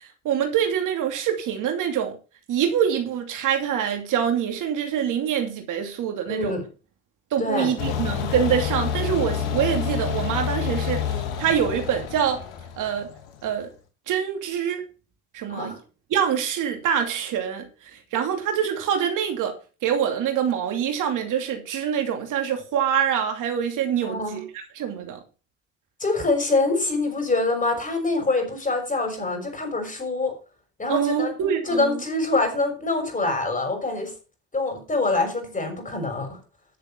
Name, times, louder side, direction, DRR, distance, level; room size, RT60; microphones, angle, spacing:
voice 1, 0.0-2.2 2.5-6.5 7.3-12.4 12.8-13.1 13.4-13.7 14.1-14.8 15.3-15.8 16.1-19.6 19.8-24.4 24.7-25.2 30.9-32.0, right 8 dB, 70° right, 2.7 m, -25 dB
voice 2, 6.3-6.6 7.4-7.7 15.5-15.8 24.0-24.5 26.0-30.3 30.8-31.3 31.7-34.1 34.5-36.4, left 3 dB, 25° left, 6.1 m, -25 dB
sound 1, 7.8-13.5, left 8 dB, 90° left, 2.5 m, -28 dB
11.0 x 6.9 x 5.7 m
supercardioid pair, 75°, 32 cm